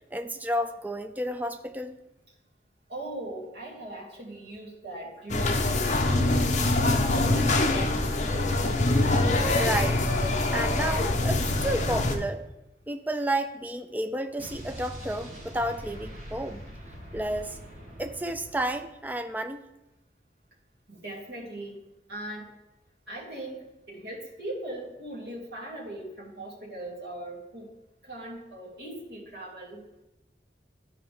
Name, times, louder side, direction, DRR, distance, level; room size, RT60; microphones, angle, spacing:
voice 1, 0.1-2.0 9.6-10.1 10.5-12.4 12.9-16.6 17.1-17.6 18.0-19.6, right 1 dB, 10° right, 7 dB, 0.4 m, -31 dB
voice 2, 2.9-8.1 20.9-21.8 22.1-22.5 23.1-27.7 28.0-29.8, right 1 dB, 85° right, -4 dB, 2.5 m, -39 dB
sound 1, 5.3-12.2, left 2 dB, 40° left, 0.8 m, -24 dB
Explosion, 14.4-19.2, equal, 40° right, 2.3 m, -43 dB
12.5 x 4.8 x 3.7 m, 0.95 s
head